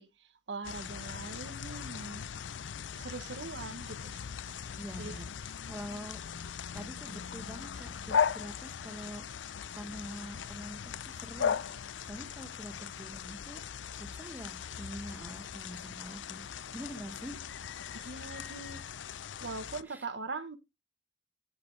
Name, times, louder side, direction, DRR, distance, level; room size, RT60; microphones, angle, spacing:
voice 1, 0.0-2.3 2.9-4.6 5.0-5.2 17.9-19.1 19.4-20.6, right 3 dB, 70° right, 1.1 m, -42 dB
sound 1, 0.6-19.8, left 7 dB, 80° left, 0.5 m, -38 dB
voice 2, 4.7-5.3 5.7-6.2 6.7-9.2 9.7-13.6 13.9-16.4 16.7-17.4 19.9-20.0, equal, 10° right, 1.4 m, -45 dB
11.0 x 8.3 x 3.2 m
head